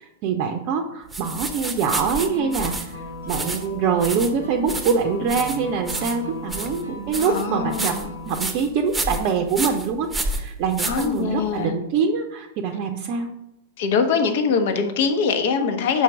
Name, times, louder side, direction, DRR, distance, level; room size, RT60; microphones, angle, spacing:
voice 1, 0.0-2.9 3.2-7.9 8.3-13.3, right 5 dB, 40° right, 4 dB, 0.6 m, -24 dB
sound 1, 1.1-11.6, right 2 dB, 5° right, 0.9 m, -31 dB
sound 2, 1.9-8.5, left 1 dB, 85° left, 2.5 m, -37 dB
voice 2, 7.2-8.1 10.8-11.8 13.8-16.0, left 5 dB, 55° left, 6 dB, 1.0 m, -23 dB
5.6 x 4.4 x 6.1 m, 0.91 s
figure-of-eight pair, 100°, 0 cm